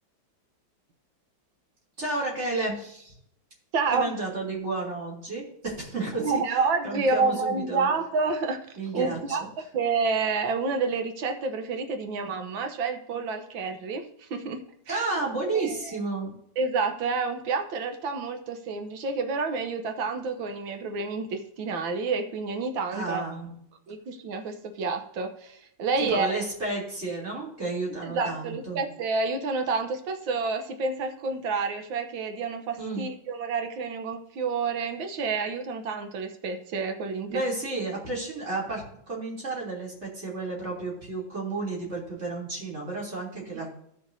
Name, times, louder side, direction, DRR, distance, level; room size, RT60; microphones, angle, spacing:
voice 1, 2.0-3.1 3.9-6.6 6.8-7.9 8.8-9.5 14.9-16.4 22.9-23.5 26.0-28.8 32.8-33.1 37.3-43.7, right 3 dB, 35° right, -4 dB, 3.3 m, -32 dB
voice 2, 3.7-4.1 6.2-8.6 8.9-9.4 9.7-15.0 15.5-15.7 16.6-23.2 23.9-26.3 28.0-37.4, right 4 dB, 75° right, 6 dB, 1.7 m, -29 dB
15.5 x 6.1 x 2.7 m, 0.73 s
omnidirectional pair, 2.2 m